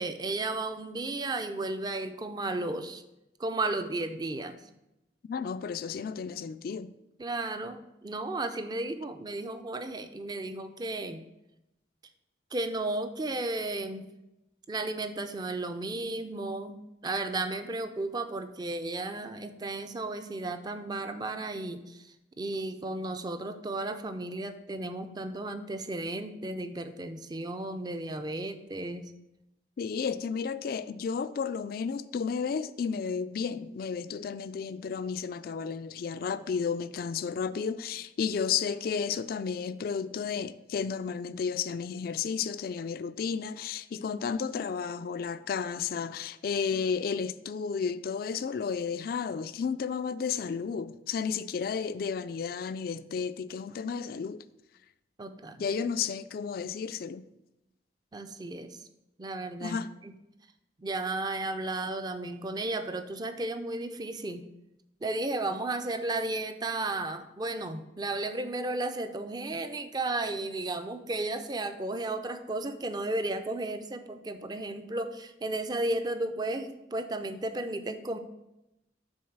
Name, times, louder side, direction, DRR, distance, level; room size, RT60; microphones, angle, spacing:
voice 1, 0.0-3.0 3.4-4.6 7.2-11.2 12.5-14.1 14.7-29.1 55.2-55.6 58.1-58.8 59.2-59.8 60.8-64.4 65.0-78.2, right 2 dB, 20° right, 0.4 m, -34 dB
voice 2, 5.3-6.9 29.8-54.4 55.6-57.3 59.6-59.9, left 6 dB, 55° left, 0.3 m, -32 dB
6.2 x 3.9 x 5.9 m
head